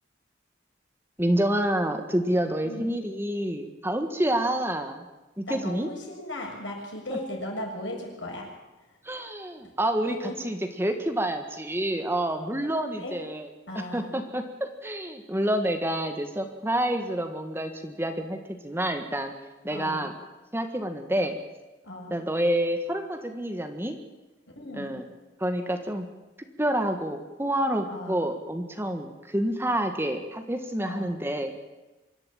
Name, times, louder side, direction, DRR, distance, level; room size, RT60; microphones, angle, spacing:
voice 1, 1.2-5.0 5.4-5.9 7.1-7.2 9.0-10.1 10.4-13.5 13.9-18.4 18.6-19.3 19.6-20.1 20.5-21.4 22.1-24.0 24.7-25.0 25.4-26.1 26.6-31.7, right 1 dB, 10° right, 6 dB, 1.6 m, -28 dB
voice 2, 5.5-8.5 8.8-9.0 9.6-9.7 10.1-10.3 13.0-13.2 13.7-14.2 19.7-20.1 21.8-22.2 24.6-25.0 27.8-28.3 30.8-31.2, left 1 dB, 80° left, 0 dB, 6.9 m, -37 dB
25.0 x 12.0 x 8.8 m, 1.1 s
head